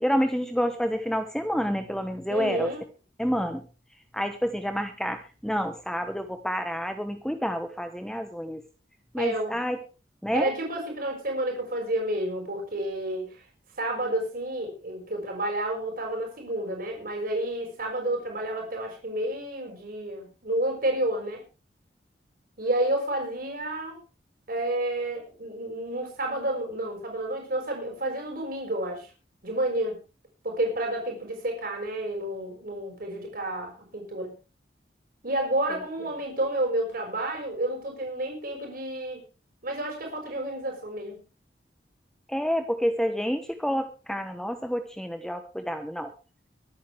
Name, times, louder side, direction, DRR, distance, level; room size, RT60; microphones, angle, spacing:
voice 1, 0.0-2.7 3.2-3.6 4.1-8.6 9.1-9.8 10.2-10.5 42.3-46.1, equal, 5° left, 7 dB, 1.1 m, -28 dB
voice 2, 2.3-2.8 9.2-9.6 10.3-13.4 13.8-21.4 22.6-24.0 24.5-29.1 29.4-30.0 30.4-34.4 35.2-39.2 39.6-41.2, right 1 dB, 55° right, 2 dB, 6.1 m, -30 dB
23.5 x 9.6 x 3.5 m, 0.32 s
head